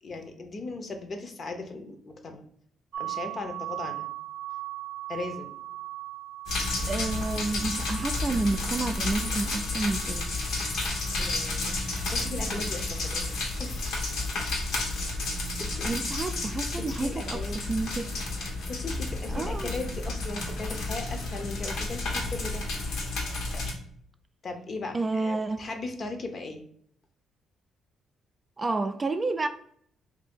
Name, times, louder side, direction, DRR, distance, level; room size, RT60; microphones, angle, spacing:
voice 1, 0.0-2.4 3.0-4.1 5.1-5.5 11.2-13.2 13.6-14.0 15.6-16.0 16.8-17.6 18.4-22.6 24.4-26.6, left 3 dB, 45° left, 0.7 m, -38 dB
sound 1, 2.9-14.7, right 15 dB, 80° right, 0.6 m, -41 dB
sound 2, 6.5-23.7, left 2 dB, 75° left, 1.0 m, -31 dB
voice 2, 6.9-10.3 15.5-17.4 17.7-18.1 19.3-19.7 24.9-25.7 28.6-29.5, right 3 dB, 25° right, 0.3 m, -30 dB
2.9 x 2.7 x 4.3 m
cardioid pair, 90°, 0 cm